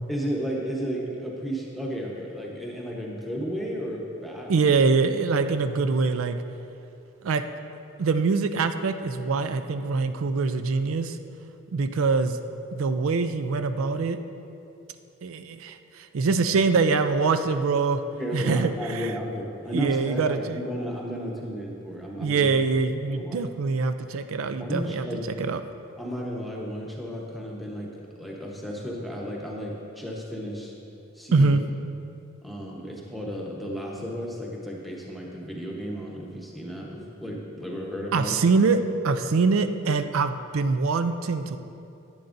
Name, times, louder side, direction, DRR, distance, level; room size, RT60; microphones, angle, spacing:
voice 1, 0.1-4.7 18.2-22.5 23.1-23.4 24.5-25.6 26.0-27.9 28.2-30.7 31.1-31.5 32.4-38.4, equal, ahead, -3 dB, 1.0 m, -33 dB
voice 2, 4.5-6.4 7.2-7.4 8.0-11.2 11.7-12.4 12.7-14.2 15.2-18.0 18.3-19.1 19.7-20.6 22.2-25.1 25.4-25.6 31.3-31.6 38.1-38.8 39.0-41.6, right 4 dB, 85° right, 9 dB, 0.4 m, -24 dB
10.5 x 9.3 x 2.6 m, 2.7 s
head